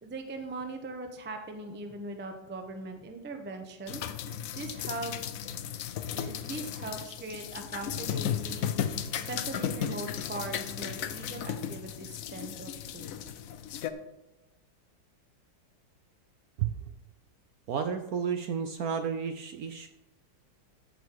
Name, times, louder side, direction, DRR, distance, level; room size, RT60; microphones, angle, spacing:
voice 1, 0.0-4.0 4.5-5.1 6.1-8.7 9.1-13.1, right 2 dB, 15° right, 5 dB, 0.4 m, -40 dB
sound 1, 3.9-13.9, left 9 dB, 70° left, 0.8 m, -35 dB
voice 2, 17.7-19.9, right 7 dB, 70° right, 8 dB, 0.9 m, -31 dB
14.5 x 5.4 x 4.7 m, 1.0 s
omnidirectional pair, 2.0 m